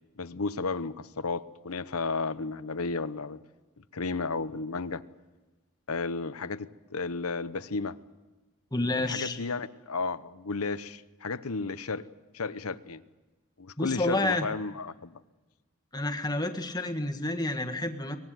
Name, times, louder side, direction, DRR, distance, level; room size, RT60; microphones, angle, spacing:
voice 1, 0.2-3.4 3.8-5.0 5.9-8.0 9.0-12.1 12.3-13.0 13.6-15.1, left 4 dB, 85° left, 0.9 m, -33 dB
voice 2, 8.7-9.4 13.8-14.5 15.9-18.2, left 2 dB, 20° left, 1.7 m, -29 dB
23.5 x 19.5 x 9.3 m
head